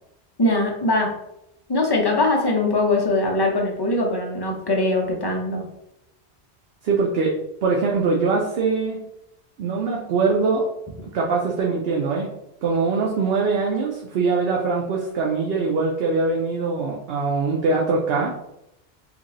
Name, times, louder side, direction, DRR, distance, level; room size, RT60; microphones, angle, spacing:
voice 1, 0.4-1.1 1.7-5.6, left 2 dB, 30° left, 0 dB, 0.5 m, -21 dB
voice 2, 6.8-7.3 7.6-9.0 9.6-10.6 11.1-12.3 12.6-18.3, right 4 dB, 65° right, -2 dB, 0.8 m, -22 dB
2.9 x 2.5 x 3.9 m, 0.82 s
omnidirectional pair, 1.1 m